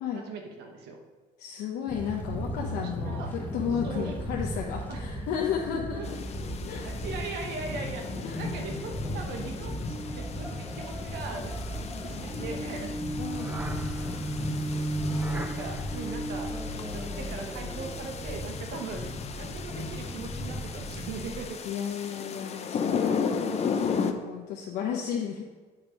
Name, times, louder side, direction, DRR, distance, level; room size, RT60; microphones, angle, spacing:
voice 1, 0.1-1.0 3.0-3.3 3.8-4.2 4.9-5.0 5.9-6.1 6.8-8.0 8.4-13.0 15.3-21.6, right 4 dB, 80° right, 3 dB, 1.1 m, -39 dB
voice 2, 1.4-6.2 6.6-6.9 8.2-8.4 13.2-13.6 21.6-25.4, left 7 dB, 85° left, -1 dB, 0.8 m, -33 dB
sound 1, 1.9-21.5, left 1 dB, 10° left, 0.9 m, -36 dB
sound 2, 6.0-24.1, left 6 dB, 40° left, 0.6 m, -36 dB
sound 3, 9.9-19.0, right 2 dB, 10° right, 0.6 m, -36 dB
7.3 x 4.7 x 5.1 m, 1.3 s
cardioid pair, 110°, 17 cm